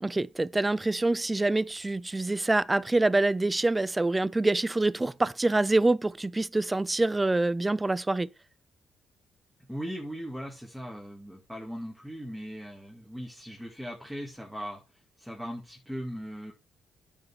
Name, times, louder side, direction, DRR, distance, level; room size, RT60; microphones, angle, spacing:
voice 1, 0.0-8.3, right 2 dB, 15° right, 0.5 m, -26 dB
voice 2, 9.7-14.8 15.2-16.5, equal, ahead, 2.3 m, -39 dB
9.4 x 5.4 x 4.6 m
cardioid pair, 90°, 0 cm